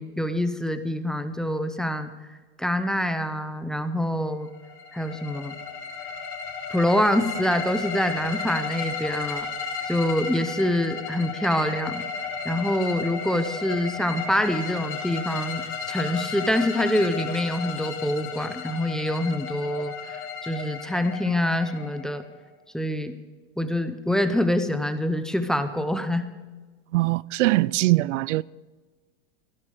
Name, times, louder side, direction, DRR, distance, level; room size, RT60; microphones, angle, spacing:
voice 1, 0.0-2.1 2.6-4.5 4.9-5.6 6.7-9.5 9.9-12.0 12.4-22.2 22.7-23.1 23.6-26.3, left 1 dB, ahead, 0.6 m, -25 dB
sound 1, 4.5-22.4, left 6 dB, 35° left, 2.7 m, -34 dB
voice 2, 26.9-28.4, right 19 dB, 80° right, 0.5 m, -22 dB
15.5 x 12.0 x 5.0 m
supercardioid pair, 145°, 36 cm